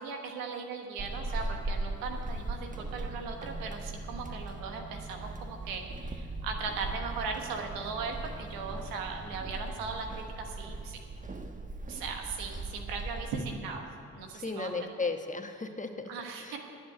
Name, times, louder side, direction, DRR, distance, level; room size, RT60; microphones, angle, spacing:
voice 1, 0.0-11.0 11.9-15.0 16.1-16.6, right 4 dB, 90° right, 3 dB, 1.2 m, -38 dB
Walk footsteps / Squeak, 1.0-13.6, right 2 dB, 25° right, 1.2 m, -39 dB
voice 2, 14.3-16.1 16.4-16.6, left 3 dB, 20° left, 6 dB, 1.2 m, -35 dB
10.5 x 7.6 x 9.0 m, 2.4 s
supercardioid pair, 45°, 34 cm